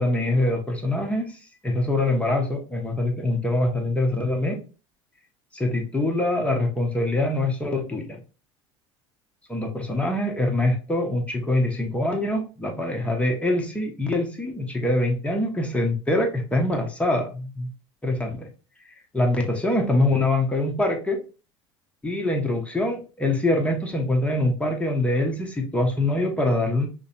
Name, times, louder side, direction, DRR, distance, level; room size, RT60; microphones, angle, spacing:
voice 1, 0.0-1.4 1.6-4.6 5.5-8.2 9.5-17.7 18.0-18.5 19.1-21.2 22.0-26.9, left 1 dB, 10° left, 2 dB, 1.0 m, -24 dB
5.2 x 2.2 x 2.6 m, 0.34 s
figure-of-eight pair, 70°, 15 cm